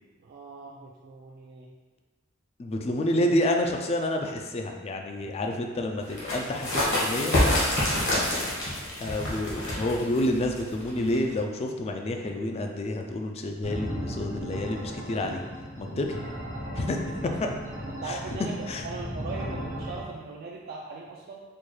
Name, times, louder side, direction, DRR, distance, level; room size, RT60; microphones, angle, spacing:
voice 1, 0.2-1.7 7.6-8.1 17.3-17.6 17.9-21.4, right 4 dB, 50° right, -3 dB, 0.3 m, -40 dB
voice 2, 2.6-7.4 9.0-15.4 15.8-16.2 16.7-17.0 17.4-17.5 18.1-18.2 18.7-18.8, left 1 dB, 30° left, 3 dB, 0.3 m, -29 dB
sound 1, 6.0-11.4, left 1 dB, 65° left, 1.1 m, -27 dB
sound 2, 13.6-20.0, equal, 80° right, 1.0 m, -36 dB
4.4 x 2.3 x 3.1 m, 1.3 s
head